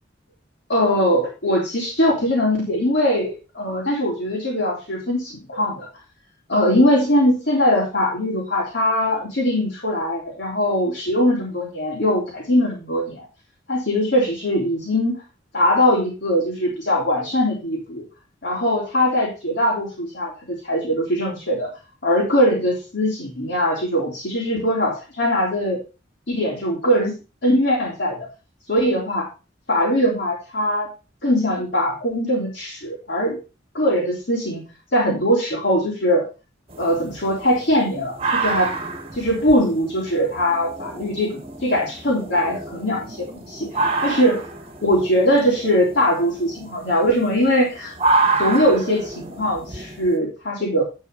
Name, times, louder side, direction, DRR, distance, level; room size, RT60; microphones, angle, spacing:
voice 1, 0.7-5.9 6.5-13.2 13.7-15.2 15.5-18.0 18.4-21.7 22.0-25.8 26.3-27.1 27.4-28.3 28.7-29.3 29.7-30.9 31.2-33.4 33.7-34.6 34.9-36.2 36.8-38.7 39.1-44.4 44.8-47.9 48.4-50.8, equal, 60° left, -4 dB, 3.4 m, -21 dB
sound 1, 36.7-50.2, right 3 dB, 30° right, 1.5 m, -28 dB
11.5 x 4.8 x 5.3 m, 0.30 s
head